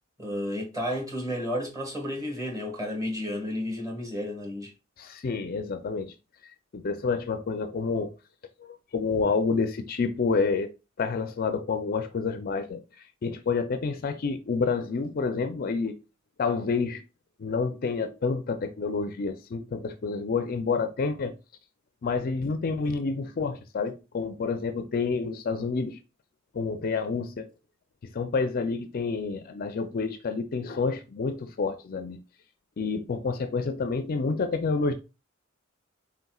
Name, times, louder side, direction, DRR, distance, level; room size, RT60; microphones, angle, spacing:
voice 1, 0.2-4.7, equal, 15° right, 1.5 m, -32 dB
voice 2, 5.0-6.1 6.4-8.1 8.6-10.7 11.0-12.8 13.2-16.0 16.4-17.0 17.4-21.3 22.0-26.0 26.5-27.5 28.1-32.2 32.8-34.9, left 4 dB, 45° left, 0.4 m, -29 dB
4.1 x 4.1 x 2.3 m
head